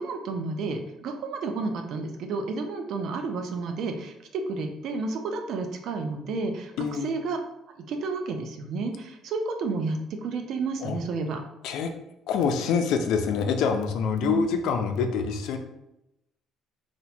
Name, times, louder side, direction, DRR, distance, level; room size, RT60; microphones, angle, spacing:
voice 1, 0.0-7.4 7.8-11.4 14.2-14.7, right 3 dB, 60° right, 5 dB, 0.5 m, -31 dB
voice 2, 6.8-7.1 10.8-11.0 11.6-11.9 12.3-15.6, left 6 dB, 75° left, 6 dB, 0.4 m, -26 dB
2.8 x 2.1 x 4.1 m, 0.87 s
cardioid pair, 125°, 0 cm